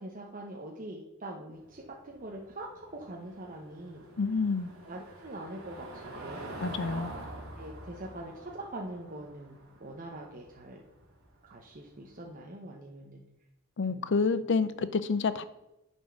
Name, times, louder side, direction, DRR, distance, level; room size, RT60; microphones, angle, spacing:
voice 1, 0.0-4.1 4.8-6.6 7.6-10.8 11.4-13.2 13.9-14.1, right 1 dB, 40° right, -1 dB, 0.8 m, -43 dB
Car passing by / Engine, 1.5-12.2, right 1 dB, 90° right, 1.9 m, -46 dB
voice 2, 4.2-4.7 6.6-7.1 13.8-15.4, left 4 dB, 60° left, 14 dB, 0.5 m, -28 dB
9.2 x 4.4 x 5.7 m, 0.93 s
head